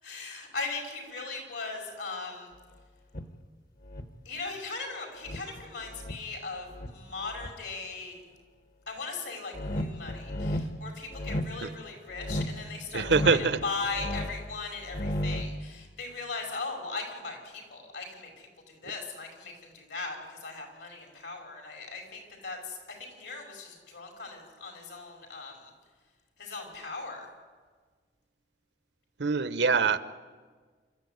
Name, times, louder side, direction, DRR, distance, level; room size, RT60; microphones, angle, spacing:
voice 1, 0.0-2.5 4.3-8.2 8.9-25.7 26.4-27.3, left 4 dB, 75° left, 2 dB, 5.6 m, -39 dB
sound 1, 3.1-3.3 3.8-4.1 5.3-6.2 6.7-7.5 9.5-10.7 11.1-11.5 12.1-12.6 12.9-14.5 14.8-15.6, equal, 55° left, 1.4 m, -33 dB
voice 2, 12.9-13.6 29.2-30.0, right 4 dB, 70° right, 14 dB, 0.9 m, -24 dB
27.5 x 13.5 x 9.5 m, 1.5 s
head